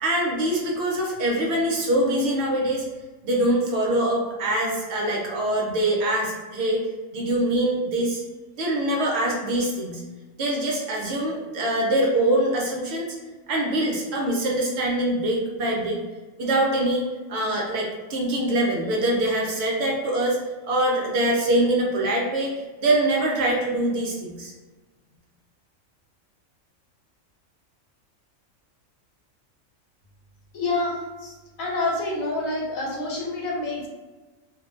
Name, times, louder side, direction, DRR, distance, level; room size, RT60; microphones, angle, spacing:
voice 1, 0.0-2.9 3.2-6.8 7.1-8.2 8.6-10.0 10.4-13.1 13.5-16.0 16.4-20.4 20.6-24.5, right 1 dB, 65° right, -2 dB, 0.7 m, -24 dB
voice 2, 30.5-33.9, left 2 dB, 85° left, -2 dB, 1.0 m, -28 dB
2.5 x 2.1 x 2.3 m, 1.2 s
omnidirectional pair, 1.4 m